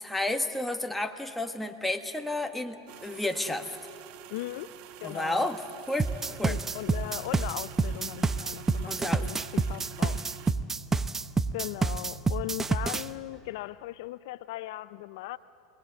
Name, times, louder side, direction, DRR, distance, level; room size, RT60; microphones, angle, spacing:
voice 1, 0.0-3.8 5.0-5.6 5.9-6.6 8.8-9.3, left 2 dB, 5° left, 5 dB, 1.6 m, -31 dB
sound 1, 2.9-10.5, right 10 dB, 55° right, 1.1 m, -47 dB
voice 2, 4.3-4.7 5.0-5.5 6.4-10.2 11.5-15.4, left 17 dB, 65° left, 15 dB, 0.5 m, -38 dB
sound 2, 6.0-13.1, right 4 dB, 15° right, 0.8 m, -28 dB
27.5 x 20.0 x 8.1 m, 2.5 s
hypercardioid pair, 90°, 2 cm